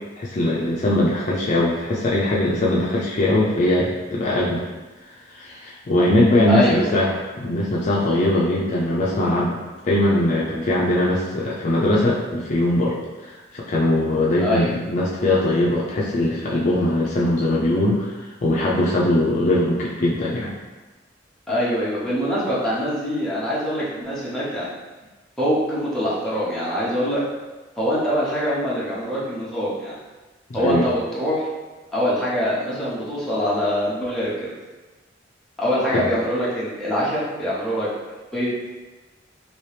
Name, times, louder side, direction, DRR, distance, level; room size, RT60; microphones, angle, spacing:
voice 1, 0.2-4.7 5.3-9.6 9.8-12.9 13.2-20.5 30.5-30.9 35.9-36.0, left 1 dB, 40° left, -5 dB, 0.4 m, -21 dB
voice 2, 6.5-6.8 14.4-14.7 21.5-24.7 25.4-27.2 27.8-30.0 30.5-31.5 31.9-34.5 35.6-37.9 38.3-38.5, equal, 5° left, -9 dB, 0.9 m, -24 dB
3.0 x 2.8 x 3.3 m, 1.2 s
head